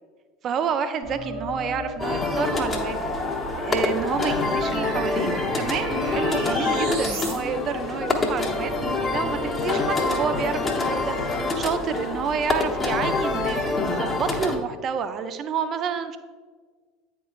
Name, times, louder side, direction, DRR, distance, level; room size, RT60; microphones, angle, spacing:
voice 1, 0.4-3.1 3.6-16.2, right 7 dB, 40° right, 10 dB, 0.5 m, -29 dB
sound 1, 1.0-7.3, right 2 dB, 70° right, 1.6 m, -36 dB
sound 2, 2.0-14.6, left 3 dB, 20° left, 0.9 m, -26 dB
8.8 x 4.5 x 2.4 m, 1.5 s
figure-of-eight pair, 75°, 0 cm